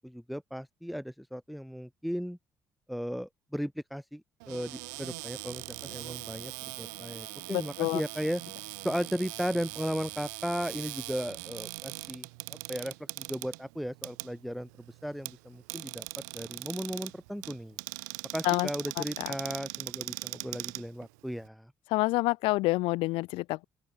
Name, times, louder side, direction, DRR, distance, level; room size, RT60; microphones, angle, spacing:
voice 1, 0.0-2.4 2.9-6.5 6.8-8.4 8.8-14.7 15.0-17.8 18.3-21.7, equal, ahead, 2.2 m, -36 dB
Cupboard open or close, 4.4-21.5, right 29 dB, 75° right, 2.0 m, -41 dB
voice 2, 7.5-8.0 18.4-18.7 19.0-19.3 21.9-23.6, left 21 dB, 65° left, 0.8 m, -28 dB
open air
figure-of-eight pair, 45°, 10 cm